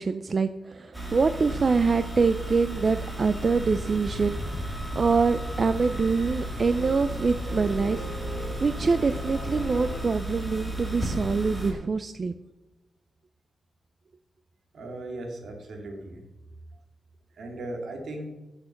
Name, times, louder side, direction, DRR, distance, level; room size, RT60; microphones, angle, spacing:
voice 1, 0.0-12.3, right 4 dB, 40° right, 10 dB, 0.5 m, -25 dB
sound 1, 0.9-11.7, right 1 dB, 10° right, 2.2 m, -34 dB
sound 2, 3.5-10.0, left 1 dB, 35° left, 3.3 m, -38 dB
voice 2, 14.7-16.2 17.4-18.3, right 1 dB, 70° right, 2 dB, 2.5 m, -37 dB
12.0 x 6.7 x 5.8 m, 1.1 s
wide cardioid pair, 135°, 0 cm